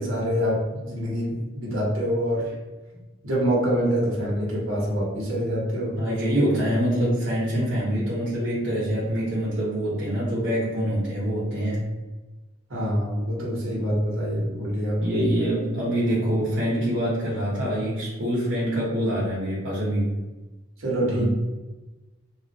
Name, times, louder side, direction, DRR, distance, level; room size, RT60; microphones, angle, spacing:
voice 1, 0.0-2.5 3.2-6.0 12.7-15.2 20.8-21.2, equal, 80° right, -5 dB, 1.1 m, -25 dB
voice 2, 5.9-11.9 15.0-20.1 21.1-21.2, equal, 60° right, -8 dB, 0.9 m, -25 dB
3.1 x 2.4 x 2.7 m, 1.2 s
head